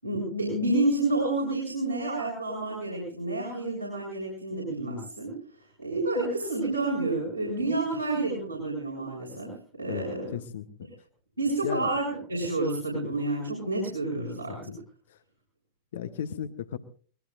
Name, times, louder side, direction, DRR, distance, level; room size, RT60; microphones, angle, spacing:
voice 1, 0.0-5.4 5.8-10.4 11.4-14.6, right 2 dB, 85° right, -4 dB, 7.2 m, -29 dB
voice 2, 10.3-10.7 11.6-11.9 14.7-14.8 15.9-16.8, left 8 dB, 60° left, 11 dB, 1.1 m, -34 dB
25.5 x 20.5 x 2.6 m, 0.43 s
figure-of-eight pair, 90°, 0 cm